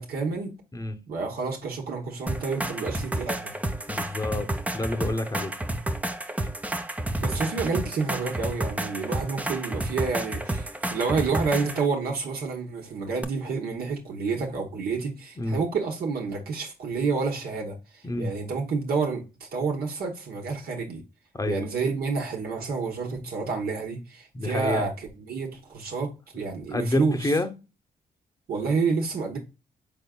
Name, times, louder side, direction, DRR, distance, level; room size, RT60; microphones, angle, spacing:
voice 1, 0.0-0.5 1.1-3.5 7.2-17.8 18.2-21.0 21.5-27.3 28.5-29.4, right 4 dB, 70° right, 1.2 m, -29 dB
sound 1, 2.3-11.9 13.2-13.3, right 1 dB, 10° right, 0.6 m, -30 dB
voice 2, 3.9-4.5 4.7-5.5 15.4-15.6 18.0-18.3 21.3-21.6 24.3-24.9 26.7-27.5, left 1 dB, 20° left, 0.9 m, -28 dB
5.4 x 3.7 x 2.3 m
cardioid pair, 65°, 16 cm